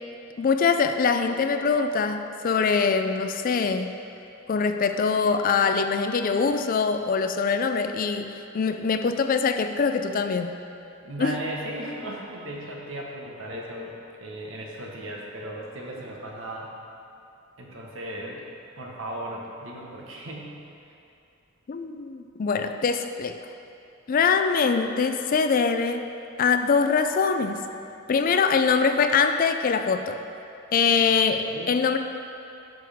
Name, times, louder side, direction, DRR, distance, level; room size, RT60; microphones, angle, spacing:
voice 1, 0.4-3.9 4.5-10.6 11.2-11.4 21.7-23.4 24.1-26.0 26.4-27.7 28.1-30.2 30.7-32.0, left 5 dB, 40° left, 8 dB, 0.3 m, -23 dB
voice 2, 11.0-13.9 14.2-16.7 17.6-18.4 18.8-20.6 31.3-31.7, right 1 dB, 70° right, -2 dB, 1.2 m, -36 dB
10.5 x 6.2 x 3.5 m, 2.7 s
head